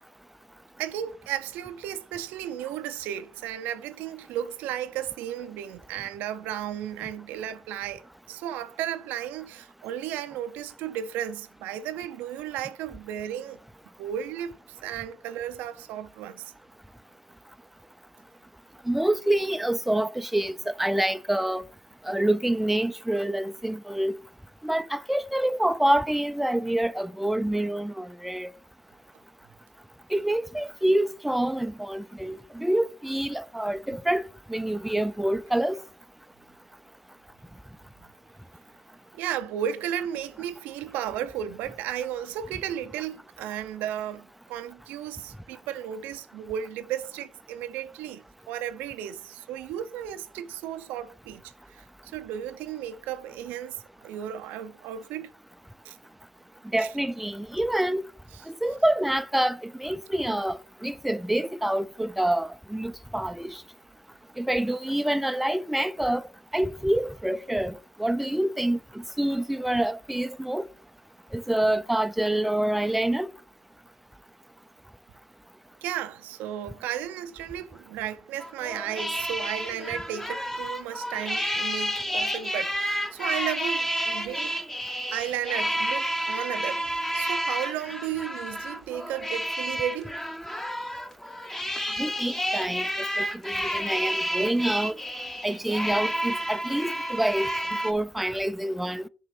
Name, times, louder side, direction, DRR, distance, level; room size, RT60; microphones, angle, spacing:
voice 1, 0.8-13.6 14.0-14.6 14.8-16.4 39.1-51.4 51.7-55.3 55.8-56.0 56.8-56.9 75.8-84.6 85.1-86.9 87.1-90.2, right 10 dB, 85° right, 0.5 m, -34 dB
voice 2, 18.9-21.6 22.0-24.2 24.6-28.5 30.1-35.8 56.7-58.1 58.5-63.6 64.4-70.7 71.3-73.3 92.0-95.0 95.4-97.5 97.8-99.1, right 1 dB, 5° right, 0.4 m, -27 dB
sound 1, 78.4-97.9, equal, 10° left, 1.0 m, -30 dB
7.4 x 3.0 x 5.8 m
supercardioid pair, 65°, 3 cm